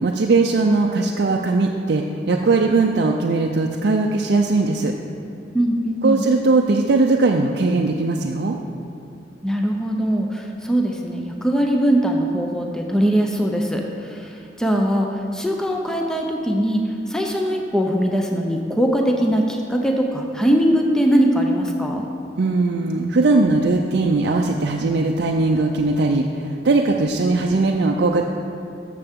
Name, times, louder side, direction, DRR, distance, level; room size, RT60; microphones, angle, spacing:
voice 1, 0.0-4.9 6.0-8.6 22.4-28.3, right 3 dB, 65° right, 1 dB, 0.5 m, -19 dB
voice 2, 5.5-6.2 9.4-22.1, equal, 5° left, 1 dB, 0.6 m, -21 dB
13.5 x 6.7 x 3.6 m, 2.4 s
head